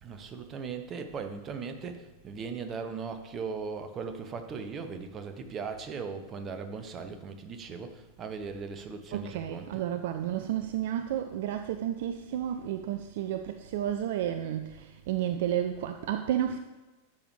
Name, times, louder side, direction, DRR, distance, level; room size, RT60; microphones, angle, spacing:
voice 1, 0.0-9.8, right 5 dB, 25° right, 0.9 m, -38 dB
voice 2, 9.1-16.6, right 11 dB, 55° right, 0.4 m, -31 dB
12.0 x 7.0 x 3.2 m
figure-of-eight pair, 90°, 0 cm